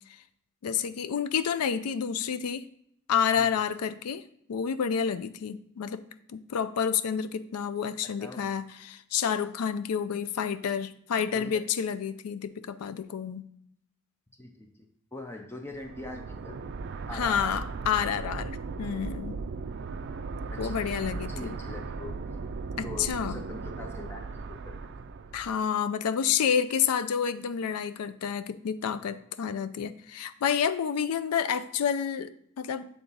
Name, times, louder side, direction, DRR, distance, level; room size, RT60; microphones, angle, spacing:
voice 1, 0.6-2.6 3.1-4.2 4.5-6.0 6.3-13.5 17.1-18.5 18.8-19.4 20.6-21.6 22.8-23.4 25.3-32.9, left 7 dB, 90° left, 12 dB, 0.4 m, -29 dB
voice 2, 14.4-16.6 17.1-17.6 20.5-22.4 22.8-24.4 24.7-24.8 29.0-29.1, left 2 dB, 10° left, 3 dB, 0.5 m, -42 dB
sound 1, 15.7-25.6, right 4 dB, 50° right, 0.4 m, -37 dB
7.1 x 3.6 x 3.9 m, 0.70 s
head